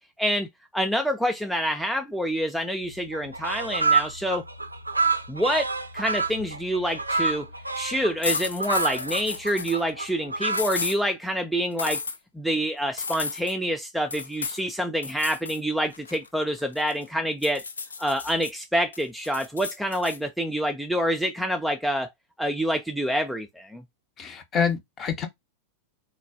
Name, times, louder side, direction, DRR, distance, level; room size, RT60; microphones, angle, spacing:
voice 1, 0.7-4.4 5.3-7.5 7.8-12.0 12.3-17.6 18.0-22.1 22.4-23.8, equal, ahead, 0.4 m, -27 dB
sound 1, 2.8-2.9 3.1-10.6, right 4 dB, 85° right, 0.4 m, -28 dB
sound 2, 8.2-9.8 10.5-11.0 11.8-12.2 13.0-13.5 14.1-14.6 15.0-15.6 15.9-17.0 17.4-18.5 18.9-20.2, left 4 dB, 75° left, 0.4 m, -32 dB
voice 2, 24.2-25.3, left 7 dB, 25° left, 0.7 m, -27 dB
3.8 x 2.2 x 2.5 m
figure-of-eight pair, 90°, 0 cm